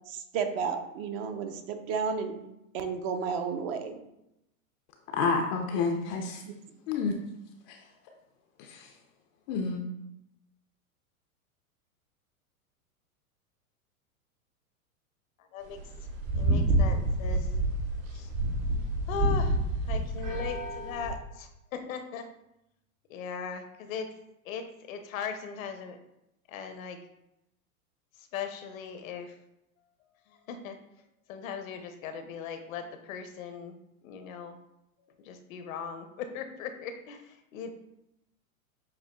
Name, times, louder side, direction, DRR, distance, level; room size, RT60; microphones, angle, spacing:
voice 1, 0.1-2.3 2.7-4.0 6.5-6.6, right 6 dB, 40° right, 6 dB, 0.6 m, -32 dB
voice 2, 5.1-6.4 6.9-7.2 7.7-7.8 8.6-8.9 9.5-9.8, left 4 dB, 35° left, 4 dB, 0.4 m, -29 dB
sound 1, 15.7-21.2, right 1 dB, 60° right, 1.5 m, -28 dB
voice 3, 16.3-17.5 18.1-18.3 19.1-19.6 19.9-22.3 23.1-24.1 24.5-26.0 26.5-27.0 28.3-29.3 30.5-30.8 31.3-33.7 34.0-34.6 35.2-37.7, left 6 dB, 65° left, 7 dB, 0.7 m, -38 dB
7.3 x 2.5 x 2.2 m, 0.86 s
hypercardioid pair, 110°, 43 cm